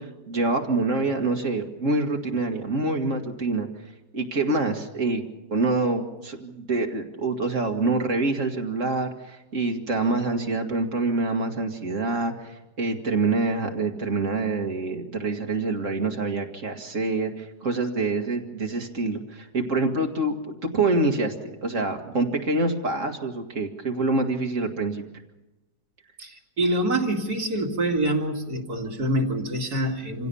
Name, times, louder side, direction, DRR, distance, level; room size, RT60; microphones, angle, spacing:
voice 1, 0.0-3.7 4.1-5.2 5.5-25.0, right 3 dB, 50° right, 3 dB, 2.2 m, -26 dB
voice 2, 26.2-30.3, right 1 dB, 75° right, 0 dB, 3.0 m, -26 dB
26.5 x 16.5 x 7.0 m, 1.0 s
omnidirectional pair, 1.7 m